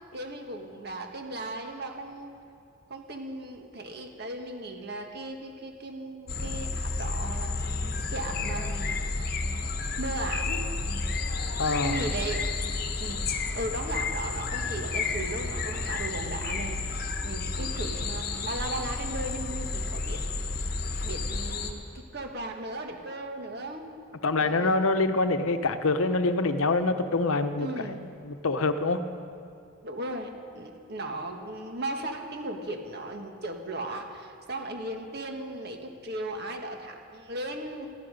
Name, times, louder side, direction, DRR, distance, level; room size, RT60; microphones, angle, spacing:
voice 1, 0.1-2.3 2.9-7.6 8.1-9.0 10.0-10.7 11.8-12.5 13.0-23.9 24.4-24.8 27.6-28.1 29.8-37.9, right 1 dB, 50° right, 3 dB, 1.6 m, -37 dB
sound 1, 6.3-21.7, left 3 dB, 45° left, 1.2 m, -31 dB
voice 2, 11.6-12.0 24.2-28.0 28.2-29.0, left 3 dB, 75° left, 9 dB, 0.9 m, -25 dB
18.5 x 15.0 x 5.3 m, 2.5 s
head